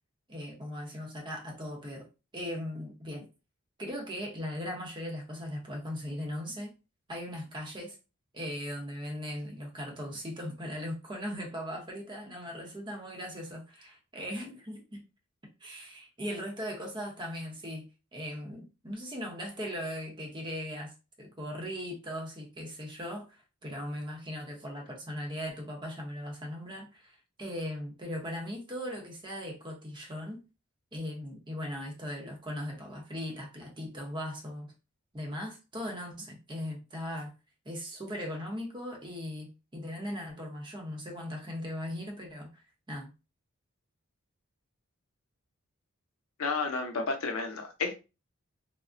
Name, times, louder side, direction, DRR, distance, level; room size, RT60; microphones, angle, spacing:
voice 1, 0.3-2.1 2.3-3.3 3.8-6.7 7.1-8.0 8.3-15.0 15.6-17.8 18.1-20.9 21.2-30.4 30.9-34.7 35.1-37.3 37.6-43.1, equal, 20° right, 0.7 m, -39 dB
voice 2, 46.4-48.0, left 4 dB, 85° left, 0.6 m, -31 dB
3.5 x 2.0 x 2.5 m
head